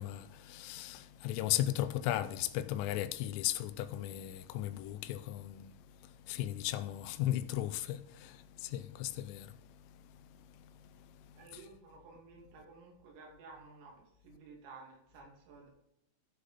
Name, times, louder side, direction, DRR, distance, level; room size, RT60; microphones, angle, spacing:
voice 1, 0.0-11.6, left 13 dB, 85° left, 3.2 m, -37 dB
voice 2, 11.4-15.7, right 4 dB, 85° right, 5.2 m, -54 dB
14.5 x 5.0 x 4.1 m
omnidirectional pair, 5.8 m